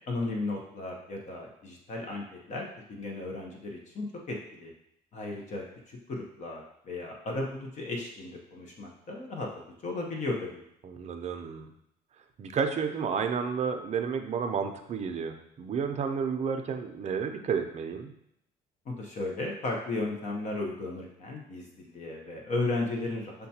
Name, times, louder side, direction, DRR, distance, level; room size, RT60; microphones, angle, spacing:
voice 1, 0.1-4.7 5.1-9.5 9.8-10.6 18.9-23.3, left 2 dB, 45° left, 0 dB, 0.7 m, -35 dB
voice 2, 10.8-11.7 12.4-18.1, right 6 dB, 40° right, 6 dB, 0.5 m, -31 dB
6.5 x 2.3 x 2.8 m, 0.76 s
cardioid pair, 110°, 17 cm